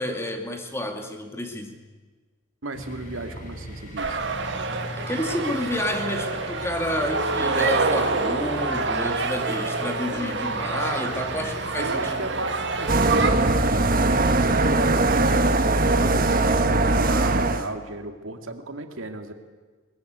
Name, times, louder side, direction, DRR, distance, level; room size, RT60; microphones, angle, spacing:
voice 1, 0.0-1.8 5.0-12.3, left 1 dB, 15° left, 4 dB, 2.3 m, -30 dB
voice 2, 2.6-4.2 11.8-19.3, right 2 dB, 85° right, 6 dB, 2.4 m, -35 dB
sound 1, 2.7-16.7, left 1 dB, 40° left, 5.1 m, -39 dB
sound 2, 4.0-13.3, right 3 dB, 60° right, 2.3 m, -27 dB
sound 3, 12.9-17.6, right 2 dB, 45° right, 1.5 m, -20 dB
23.0 x 20.5 x 9.4 m, 1.4 s
head